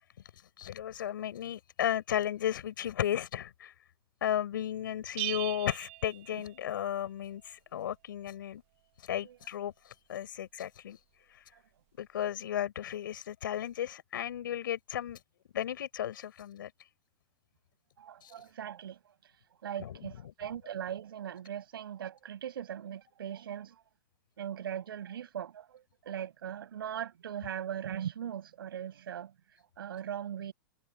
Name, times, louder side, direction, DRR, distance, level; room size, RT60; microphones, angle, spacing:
voice 1, 0.6-3.7 4.2-8.6 9.0-11.0 11.3-11.4 12.0-15.2 15.5-16.7 18.2-18.3 19.8-20.3, left 11 dB, 65° left, 7.0 m, -34 dB
Bell, 5.2-7.0, right 21 dB, 35° right, 1.7 m, -39 dB
voice 2, 18.0-19.3 19.6-23.8 24.4-29.3 29.8-30.5, right 9 dB, 85° right, 6.1 m, -40 dB
supercardioid pair, 180°, 12 cm